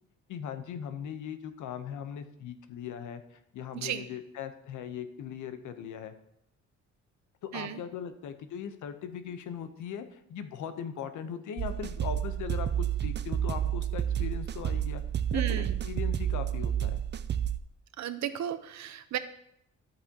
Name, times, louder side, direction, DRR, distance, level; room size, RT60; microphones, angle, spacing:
voice 1, 0.3-3.2 3.5-6.1 7.4-15.0 15.3-17.0, left 8 dB, 80° left, 10 dB, 0.9 m, -39 dB
voice 2, 3.7-4.1 7.5-7.8 15.3-15.8 18.0-19.2, right 10 dB, 65° right, 12 dB, 0.8 m, -34 dB
sound 1, 11.6-17.6, right 10 dB, 35° right, 0.4 m, -30 dB
11.0 x 8.4 x 2.9 m, 0.75 s
cardioid pair, 90°, 30 cm